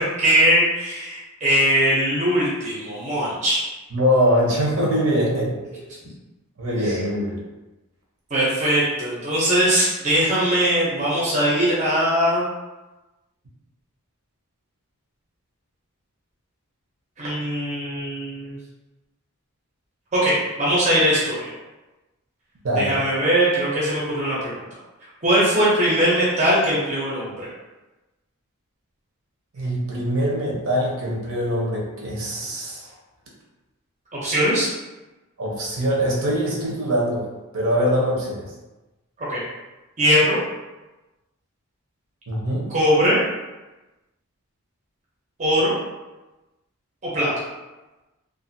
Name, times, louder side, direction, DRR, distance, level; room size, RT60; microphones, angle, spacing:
voice 1, 0.2-3.6 6.8-7.0 8.3-12.4 17.2-18.6 20.1-21.5 22.7-24.6 25.2-27.5 34.1-34.7 39.2-39.4 40.0-40.4 42.7-43.2 45.4-45.7 47.1-47.4, equal, 30° right, -7 dB, 0.6 m, -20 dB
voice 2, 3.9-5.6 6.6-7.4 22.6-23.0 29.6-32.9 35.4-37.2 37.5-38.4 42.3-42.7, equal, 65° right, -4 dB, 0.7 m, -23 dB
2.4 x 2.3 x 2.6 m, 1.1 s
head